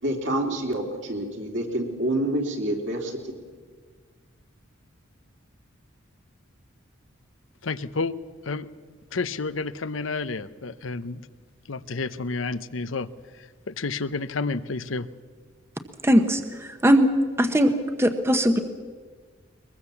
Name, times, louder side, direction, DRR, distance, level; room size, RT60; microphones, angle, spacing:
voice 1, 0.0-3.3, right 1 dB, 65° right, 1 dB, 3.5 m, -27 dB
voice 2, 7.6-8.1 8.5-8.7 9.1-11.2 11.7-13.1 13.7-15.1, left 3 dB, 80° left, 13 dB, 0.8 m, -30 dB
voice 3, 16.0-17.1 17.4-17.7 18.0-18.6, equal, 15° right, 7 dB, 1.0 m, -20 dB
22.0 x 21.5 x 7.2 m, 1.5 s
head